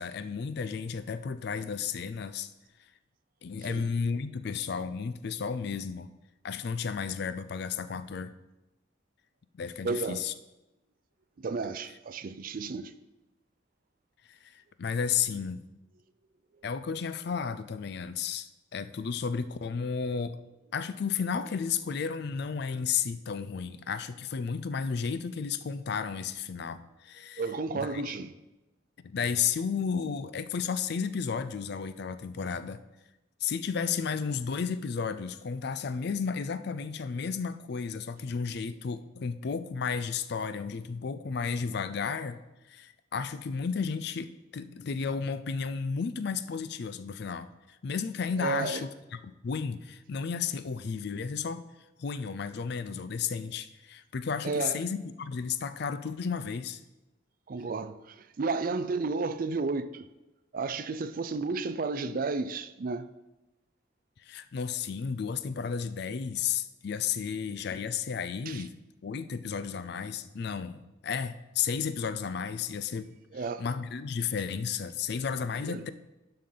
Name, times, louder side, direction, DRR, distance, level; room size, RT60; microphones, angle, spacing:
voice 1, 0.0-2.5 3.4-6.1 6.4-8.3 9.5-10.3 14.3-15.7 16.6-20.4 20.7-27.4 27.7-28.0 29.0-32.8 33.4-42.4 42.7-47.5 47.8-51.7 52.0-56.8 64.2-68.7 69.0-75.9, left 6 dB, 55° left, 0.4 m, -33 dB
voice 2, 9.8-10.2 11.4-12.9 27.4-28.3 48.4-48.8 54.4-54.8 57.5-60.1 60.5-63.1 68.5-68.6 73.3-73.6 75.6-75.8, right 4 dB, 45° right, 0.4 m, -32 dB
11.0 x 5.6 x 3.9 m
head